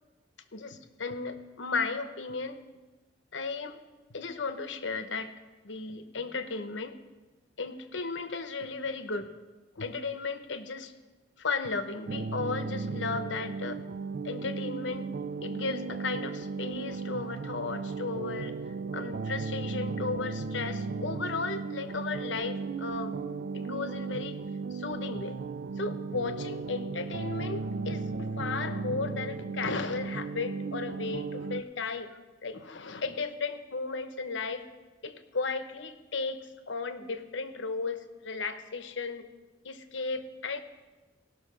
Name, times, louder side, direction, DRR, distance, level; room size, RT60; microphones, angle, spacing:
voice 1, 0.5-2.6 3.3-3.8 4.1-5.3 5.6-7.0 7.6-9.3 9.8-10.9 11.4-13.8 14.2-15.1 15.4-18.6 18.9-23.1 23.5-24.4 24.7-25.4 25.8-34.6 35.0-39.2 39.6-40.6, left 4 dB, 70° left, 9 dB, 0.9 m, -35 dB
sound 1, 12.1-31.6, right 4 dB, 55° right, 0.4 m, -35 dB
17.0 x 6.1 x 6.2 m, 1.2 s
head